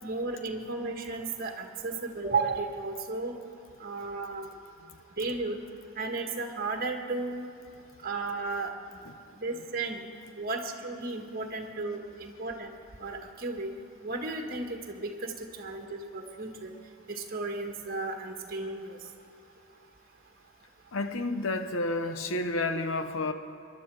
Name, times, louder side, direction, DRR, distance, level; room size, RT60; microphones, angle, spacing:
voice 1, 0.0-3.3 3.8-4.5 5.2-5.6 5.9-7.5 8.0-9.0 9.3-10.1 10.4-12.7 13.0-13.7 14.0-15.3 15.6-16.7 17.1-19.0, right 3 dB, 45° right, 3 dB, 1.6 m, -34 dB
voice 2, 20.9-23.3, left 2 dB, 65° left, 8 dB, 1.0 m, -30 dB
22.5 x 11.0 x 4.8 m, 2.8 s
head